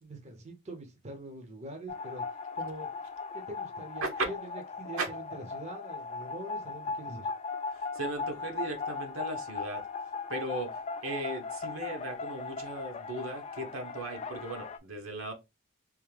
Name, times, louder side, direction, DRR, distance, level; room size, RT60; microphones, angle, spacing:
voice 1, 0.0-2.9 3.3-7.3, right 1 dB, 30° right, 0.7 m, -44 dB
sound 1, 1.9-14.8, left 4 dB, 30° left, 0.3 m, -38 dB
voice 2, 7.7-9.9 10.3-15.3, right 2 dB, 70° right, 1.0 m, -37 dB
3.6 x 2.6 x 3.2 m
head